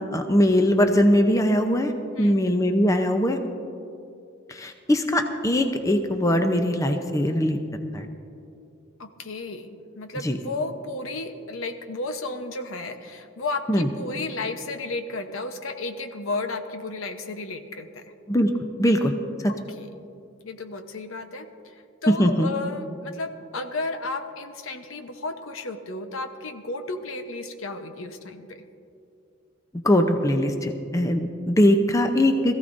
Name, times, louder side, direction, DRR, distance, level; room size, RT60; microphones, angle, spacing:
voice 1, 0.1-1.9 2.2-3.4 4.5-7.6 7.9-8.1 10.2-10.4 13.7-13.9 18.3-18.5 18.8-19.1 19.4-19.5 22.1-22.5 29.8-32.6, equal, 15° left, 5 dB, 0.6 m, -21 dB
voice 2, 9.0-18.0 19.5-19.9 20.4-28.6, left 3 dB, 80° left, 7 dB, 0.9 m, -33 dB
21.5 x 15.0 x 2.6 m, 2.6 s
head